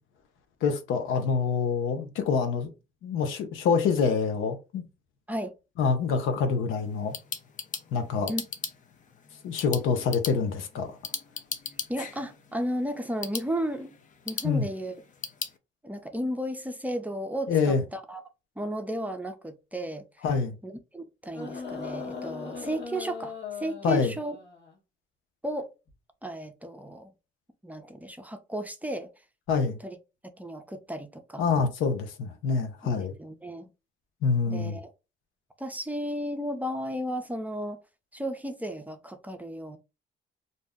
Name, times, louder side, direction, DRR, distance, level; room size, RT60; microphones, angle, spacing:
voice 1, 0.6-2.7 3.0-4.8 5.8-7.2 7.9-8.3 9.4-11.0 14.4-14.7 17.5-17.8 20.2-20.6 23.8-24.1 29.5-29.8 31.4-33.1 34.2-34.8, left 5 dB, 90° left, 0.7 m, -26 dB
sound 1, 6.8-15.6, left 6 dB, 40° left, 0.5 m, -39 dB
voice 2, 11.9-13.9 14.2-15.0 15.8-18.2 18.6-20.2 20.6-24.4 25.4-25.7 26.2-27.1 27.6-29.1 29.8-30.0 30.4-31.5 32.8-32.9 33.2-33.7 34.5-34.9 35.6-37.8 38.1-39.8, equal, 10° right, 0.5 m, -34 dB
sound 2, 21.3-24.8 25.9-26.0, left 4 dB, 60° left, 1.1 m, -39 dB
2.6 x 2.1 x 3.5 m
cardioid pair, 90°, 20 cm